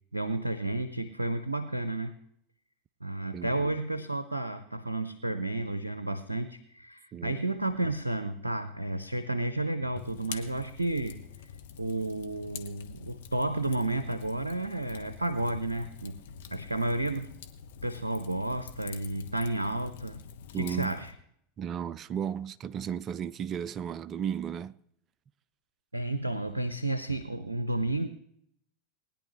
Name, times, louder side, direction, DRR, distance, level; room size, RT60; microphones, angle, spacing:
voice 1, 0.1-2.1 3.0-11.2 11.8-16.2 16.5-17.3 17.8-20.2 20.6-21.1 25.9-28.1, right 2 dB, 90° right, 0.6 m, -32 dB
voice 2, 3.3-3.8 7.1-7.4 20.5-20.9 21.6-24.8, right 8 dB, 30° right, 0.5 m, -34 dB
Fire, 10.0-21.1, left 8 dB, 65° left, 1.1 m, -46 dB
20.0 x 10.0 x 3.1 m
figure-of-eight pair, 85°, 0 cm